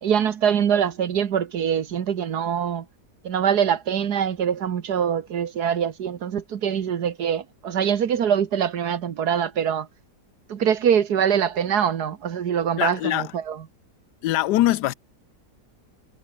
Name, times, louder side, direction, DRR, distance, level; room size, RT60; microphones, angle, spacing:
voice 1, 0.0-2.9 3.2-9.9 10.5-13.6, right 8 dB, 70° right, 1.7 m, -23 dB
voice 2, 12.8-13.3 14.2-14.9, left 15 dB, 80° left, 1.2 m, -22 dB
omnidirectional pair, 1.8 m